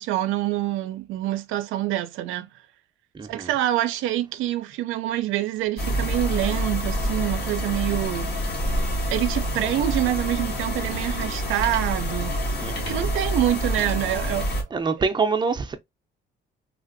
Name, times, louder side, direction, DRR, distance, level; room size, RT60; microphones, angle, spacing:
voice 1, 0.0-2.5 3.3-8.3 9.1-12.4 12.8-14.5, right 13 dB, 90° right, 0.4 m, -26 dB
voice 2, 3.1-3.5 12.6-13.0 14.7-15.7, right 4 dB, 20° right, 0.6 m, -25 dB
sound 1, 5.8-14.6, equal, 55° left, 1.2 m, -27 dB
3.3 x 2.5 x 2.5 m
cardioid pair, 90°, 20 cm